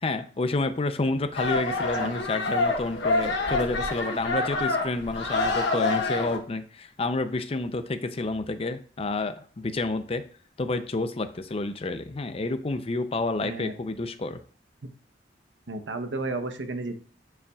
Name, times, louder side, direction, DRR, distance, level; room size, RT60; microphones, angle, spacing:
voice 1, 0.0-10.2 10.6-14.4, left 2 dB, 35° left, 10 dB, 0.5 m, -29 dB
sound 1, 1.3-6.4, left 2 dB, 65° left, 1.1 m, -27 dB
voice 2, 13.4-13.7 15.7-17.0, right 2 dB, 85° right, 7 dB, 0.9 m, -32 dB
9.3 x 5.6 x 2.4 m, 0.44 s
head